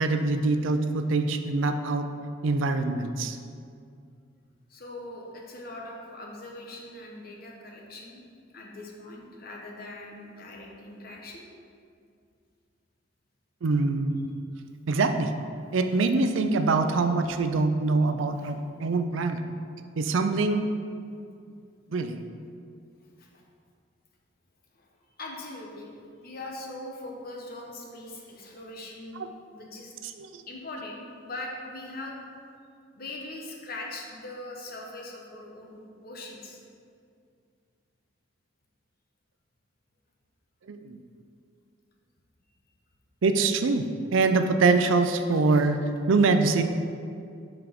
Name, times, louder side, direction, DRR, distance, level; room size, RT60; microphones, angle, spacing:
voice 1, 0.0-2.1 2.4-3.4 13.6-14.3 14.9-15.3 15.7-19.4 20.0-20.6 21.9-22.2 30.2-30.4 40.7-41.0 43.2-43.8 44.1-45.8 46.1-46.6, right 3 dB, 85° right, 8 dB, 0.5 m, -24 dB
voice 2, 4.7-8.2 8.5-11.4 18.4-18.5 23.2-23.3 24.7-24.9 25.2-25.9 26.2-29.2 29.5-29.9 30.5-32.2 32.9-36.6 45.5-45.6, left 2 dB, 50° left, -1 dB, 1.0 m, -41 dB
5.8 x 4.6 x 5.1 m, 2.4 s
head